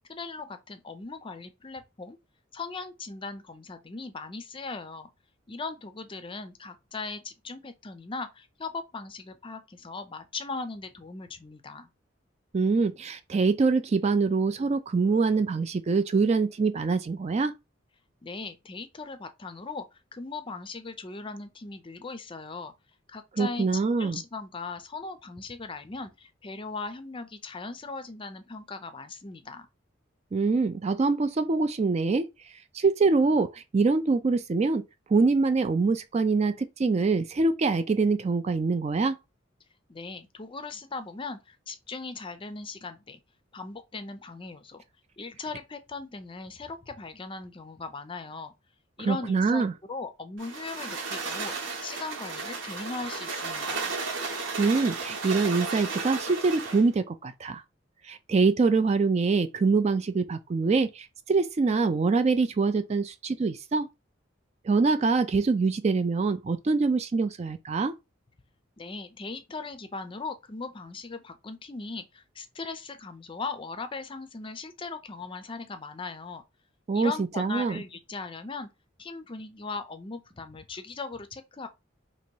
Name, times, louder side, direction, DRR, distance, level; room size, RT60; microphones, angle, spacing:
voice 1, 0.1-2.2 2.5-5.1 5.5-11.9 18.2-22.7 23.1-23.7 24.0-29.7 39.9-43.2 43.5-44.8 45.2-48.5 49.0-53.9 68.8-76.4 76.9-78.7 79.0-81.7, left 4 dB, 25° left, 0.5 m, -39 dB
voice 2, 12.5-17.5 23.4-24.2 30.3-32.3 32.7-34.8 35.1-39.2 49.0-49.7 54.6-57.6 58.0-63.9 64.6-67.9 76.9-77.8, right 4 dB, 35° right, 0.4 m, -24 dB
sound 1, 50.4-56.9, right 4 dB, 70° right, 1.0 m, -34 dB
2.9 x 2.9 x 4.5 m
head